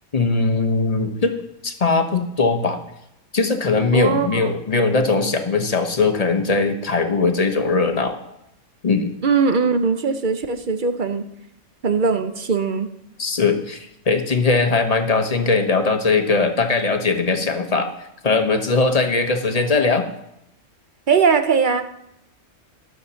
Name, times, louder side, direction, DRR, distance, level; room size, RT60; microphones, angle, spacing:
voice 1, 0.1-1.3 1.6-2.8 3.3-8.1 8.8-9.1 13.2-17.9 18.2-20.1, left 3 dB, 30° left, 5 dB, 1.0 m, -20 dB
voice 2, 3.9-4.5 9.2-11.3 11.8-12.9 21.1-21.8, right 5 dB, 45° right, 9 dB, 0.8 m, -20 dB
13.0 x 6.1 x 7.0 m, 0.82 s
omnidirectional pair, 1.5 m